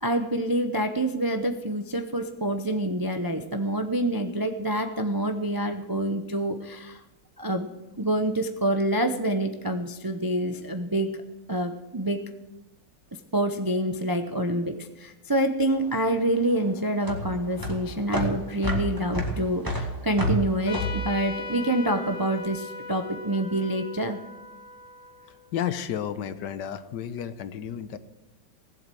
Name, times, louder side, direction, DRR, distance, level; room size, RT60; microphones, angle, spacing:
voice 1, 0.0-7.0 7.4-7.7 8.0-11.1 11.5-12.2 13.3-24.2, right 1 dB, 30° right, 6 dB, 0.4 m, -27 dB
sound 1, 15.7-22.2, right 1 dB, 10° right, 1.9 m, -30 dB
Trumpet, 20.7-25.7, left 3 dB, 50° left, 1.6 m, -39 dB
voice 2, 25.5-28.0, left 9 dB, 75° left, 13 dB, 1.4 m, -32 dB
18.0 x 7.9 x 7.7 m, 1.0 s
omnidirectional pair, 1.9 m